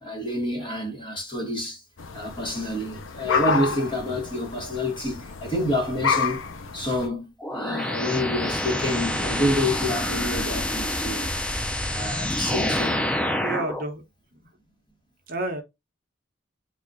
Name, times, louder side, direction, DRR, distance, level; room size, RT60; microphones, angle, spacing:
voice 1, 0.0-1.8 2.1-6.4 6.7-11.3 11.9-13.0, left 1 dB, 25° left, 1.1 m, -28 dB
sound 1, 2.0-7.1, left 5 dB, 80° left, 0.6 m, -29 dB
sound 2, 7.4-13.8, left 1 dB, 5° left, 0.3 m, -27 dB
voice 2, 13.2-14.0 14.3-14.5 15.3-15.6, right 2 dB, 45° right, 0.8 m, -31 dB
3.5 x 2.4 x 3.9 m
head